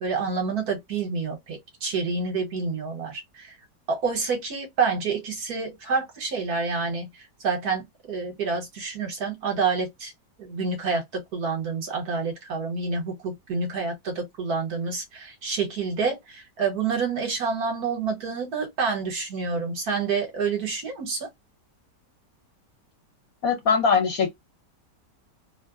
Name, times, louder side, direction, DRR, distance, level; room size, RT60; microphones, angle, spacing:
voice 1, 0.0-3.5 3.9-10.1 10.4-21.3, right 4 dB, 65° right, 1.6 m, -28 dB
voice 2, 23.4-24.3, left 5 dB, 60° left, 1.3 m, -21 dB
3.2 x 2.1 x 2.3 m
omnidirectional pair, 1.8 m